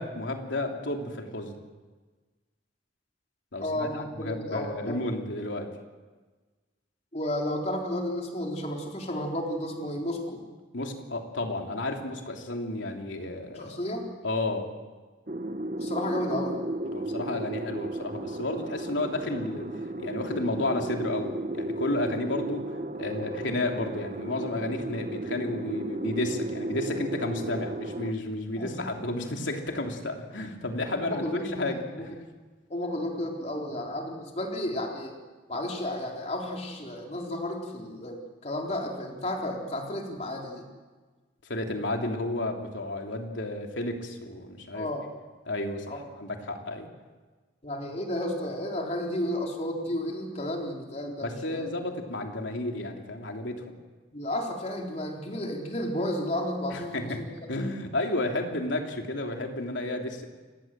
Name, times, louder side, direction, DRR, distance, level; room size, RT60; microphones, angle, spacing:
voice 1, 0.0-1.5 3.5-5.7 10.7-13.8 14.2-14.7 16.9-22.7 23.0-32.1 41.4-44.9 45.5-46.9 51.2-53.6 56.7-57.2 57.5-60.2, left 2 dB, 80° left, 3 dB, 3.2 m, -32 dB
voice 2, 3.6-5.0 7.1-10.4 13.6-14.1 15.8-16.6 28.6-28.8 31.0-32.0 32.7-35.2 35.5-40.7 44.7-45.1 45.9-46.0 47.6-51.7 54.1-57.3, left 1 dB, 35° left, 0 dB, 4.0 m, -32 dB
sound 1, 15.3-28.1, right 1 dB, 40° right, 1.1 m, -34 dB
29.5 x 18.5 x 7.5 m, 1.3 s
head